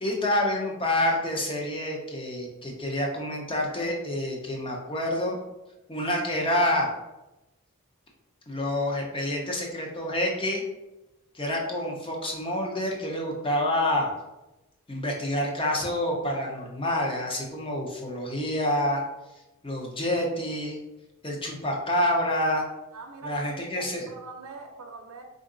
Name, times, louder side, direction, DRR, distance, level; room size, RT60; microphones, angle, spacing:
voice 1, 0.0-5.3 5.9-6.9 8.5-10.6 11.3-14.1 14.9-19.0 19.6-20.8 21.2-22.7 23.2-24.0, left 1 dB, 25° left, 0.8 m, -27 dB
voice 2, 22.9-25.2, right 3 dB, 90° right, 0.6 m, -43 dB
4.7 x 2.6 x 3.8 m
head